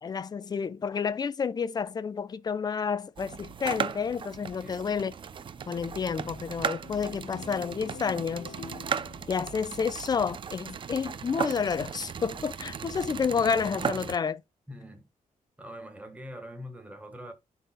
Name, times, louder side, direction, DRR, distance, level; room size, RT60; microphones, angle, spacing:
voice 1, 0.0-5.1 5.7-8.5 9.3-14.4, left 6 dB, 30° left, 0.5 m, -30 dB
sound 1, 3.2-14.2, right 7 dB, 35° right, 0.5 m, -36 dB
sound 2, 5.1-10.7, left 8 dB, 75° left, 1.0 m, -49 dB
voice 2, 14.7-15.1 15.6-17.3, equal, 10° right, 1.3 m, -43 dB
11.5 x 4.2 x 2.2 m
wide cardioid pair, 155°, 14 cm